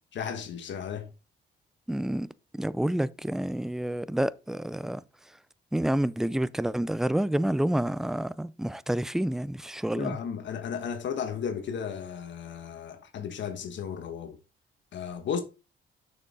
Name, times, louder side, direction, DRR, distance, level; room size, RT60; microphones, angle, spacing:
voice 1, 0.1-1.1 9.9-14.4 14.9-15.4, left 7 dB, 65° left, 1.3 m, -34 dB
voice 2, 1.9-2.3 2.5-5.0 5.7-10.2, right 1 dB, ahead, 0.4 m, -28 dB
6.6 x 6.5 x 3.7 m
cardioid pair, 90°, 20 cm